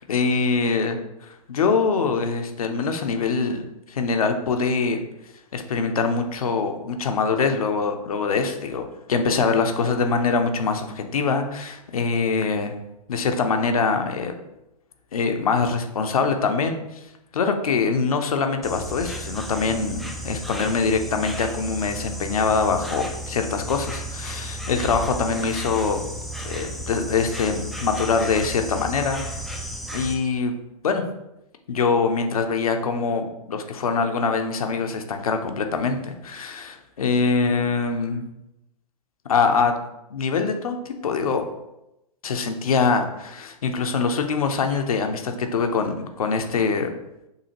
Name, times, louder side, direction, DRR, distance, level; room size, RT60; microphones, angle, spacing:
voice 1, 0.0-5.0 5.5-12.7 13.1-14.3 15.1-16.8 17.3-26.0 26.4-29.2 29.9-30.5 30.8-31.0 31.7-38.2 39.3-39.8 40.1-41.4 42.2-46.9, left 5 dB, 70° left, 6 dB, 0.7 m, -24 dB
Insect, 18.6-30.1, equal, ahead, 0.3 m, -33 dB
6.6 x 2.8 x 2.9 m, 0.89 s
figure-of-eight pair, 105°, 19 cm